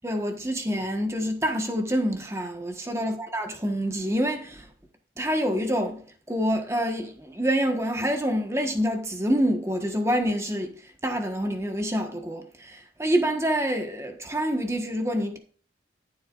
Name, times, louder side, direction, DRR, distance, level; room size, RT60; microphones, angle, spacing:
voice 1, 0.0-4.7 5.2-6.0 6.3-15.4, equal, 15° right, 1.4 m, -27 dB
13.5 x 7.8 x 2.5 m
head